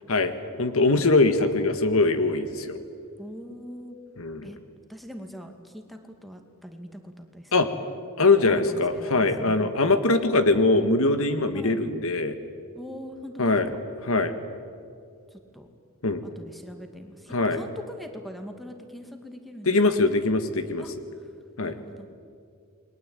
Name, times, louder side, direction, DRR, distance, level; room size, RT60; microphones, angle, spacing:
voice 1, 0.1-2.8 4.2-4.5 7.5-7.7 8.2-12.4 13.4-13.7 14.0-14.4 16.0-16.2 17.3-17.6 19.7-20.8 21.6-21.7, left 3 dB, 70° left, 10 dB, 1.7 m, -22 dB
voice 2, 3.2-4.0 4.4-4.6 4.9-7.8 8.5-9.7 11.5-11.8 12.8-13.6 15.3-15.7 16.4-19.7 20.8-20.9 21.6-22.1, equal, ahead, 5 dB, 2.4 m, -41 dB
29.5 x 22.0 x 9.1 m, 2.2 s
head